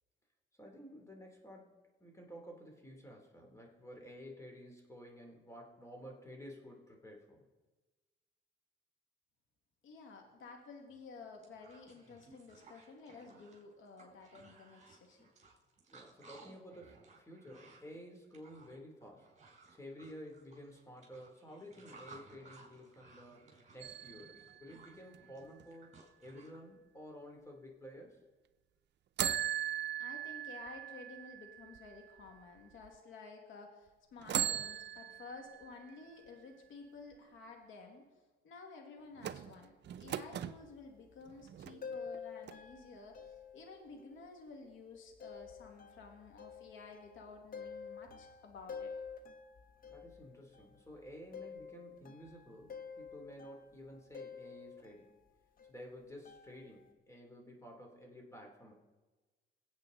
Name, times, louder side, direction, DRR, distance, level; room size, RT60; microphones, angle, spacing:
voice 1, 0.6-7.4 15.9-19.3 19.7-26.0 26.2-28.2 49.9-55.2 55.7-58.7, equal, 15° left, 1 dB, 3.4 m, -52 dB
voice 2, 9.8-15.3 30.0-38.1 38.4-48.9, left 4 dB, 80° left, 3 dB, 2.2 m, -53 dB
sound 1, 10.9-11.0 11.3-26.6, right 3 dB, 35° right, 4.0 m, -59 dB
sound 2, 23.8-25.6 29.2-32.3 32.8-32.9 34.2-36.0 39.2-40.6 41.3-42.2 42.5-42.6, right 10 dB, 60° right, 0.6 m, -39 dB
sound 3, 40.3-41.2 41.8-44.3 45.1-50.8 51.1-55.3 55.6-55.7 56.3-56.9, left 6 dB, 45° left, 1.2 m, -49 dB
22.5 x 8.2 x 4.0 m, 1.2 s
cardioid pair, 90°, 20 cm